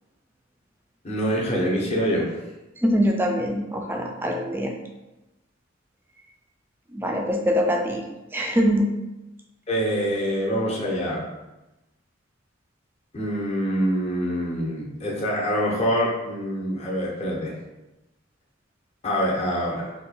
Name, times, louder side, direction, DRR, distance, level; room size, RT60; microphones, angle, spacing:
voice 1, 1.0-2.3 9.7-11.2 13.1-17.5 19.0-19.9, equal, 30° left, -3 dB, 0.6 m, -25 dB
voice 2, 2.8-4.7 6.9-8.0 8.3-8.9, equal, 10° right, 2 dB, 0.3 m, -23 dB
2.7 x 2.2 x 4.1 m, 1.0 s
head